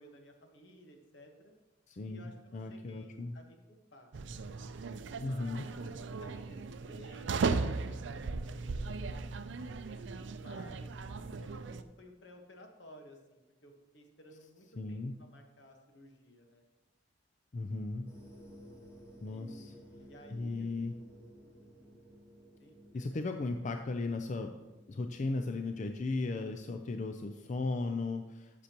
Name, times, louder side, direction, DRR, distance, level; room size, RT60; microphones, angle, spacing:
voice 1, 0.0-1.5 2.0-4.1 5.2-9.7 10.4-16.6 19.2-20.7 22.6-23.2, equal, 70° left, 3 dB, 1.3 m, -56 dB
voice 2, 1.9-3.4 5.2-5.7 14.8-15.2 17.5-18.1 19.2-19.7 20.3-21.0 22.9-24.6 24.9-28.6, left 3 dB, 40° left, 6 dB, 0.4 m, -36 dB
sound 1, 4.1-11.8, right 4 dB, 70° right, 0.5 m, -37 dB
sound 2, 18.1-25.2, equal, 15° left, 1.5 m, -55 dB
13.0 x 6.7 x 3.0 m, 1.1 s
head